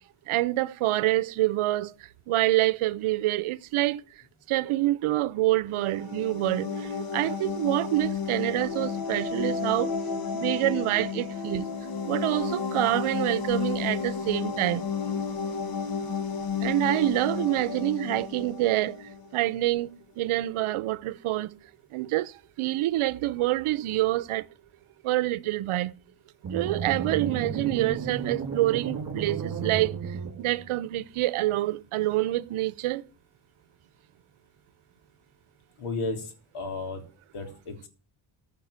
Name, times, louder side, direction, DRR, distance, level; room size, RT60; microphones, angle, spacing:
voice 1, 0.3-4.0 4.5-9.9 10.3-11.7 12.0-14.9 16.6-21.6 21.9-24.5 25.0-25.9 26.5-33.0, right 16 dB, 85° right, 0.8 m, -27 dB
sound 1, 5.7-19.3, left 6 dB, 45° left, 1.5 m, -32 dB
sound 2, 26.4-30.7, right 6 dB, 40° right, 2.5 m, -33 dB
voice 2, 35.8-37.0 37.3-37.9, left 3 dB, 90° left, 3.4 m, -34 dB
15.0 x 5.5 x 8.1 m
cardioid pair, 130°, 48 cm